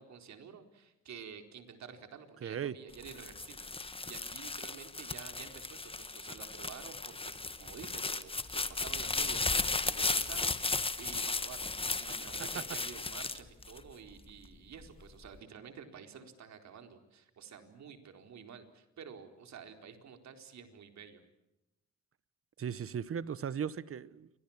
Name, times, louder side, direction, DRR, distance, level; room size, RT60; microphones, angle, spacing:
voice 1, 0.0-21.2, right 7 dB, 65° right, 4.3 m, -50 dB
voice 2, 2.4-2.8 12.1-12.6 22.6-24.3, right 8 dB, 50° right, 1.4 m, -38 dB
sound 1, 2.9-14.3 14.8-15.4, left 3 dB, 20° left, 1.6 m, -35 dB
29.5 x 25.0 x 7.4 m
cardioid pair, 90°, 30 cm